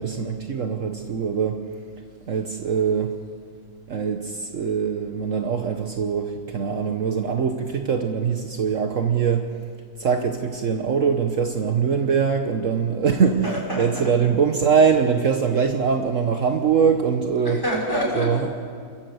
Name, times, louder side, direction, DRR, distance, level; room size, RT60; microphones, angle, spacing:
voice 1, 0.0-1.6 2.3-3.1 3.9-9.4 10.0-13.4 13.8-17.6 18.2-18.5, right 6 dB, 60° right, 5 dB, 1.3 m, -22 dB
voice 2, 13.4-14.1 17.4-18.3, equal, 15° left, -3 dB, 5.7 m, -26 dB
29.0 x 13.5 x 7.8 m, 2.2 s
omnidirectional pair, 1.6 m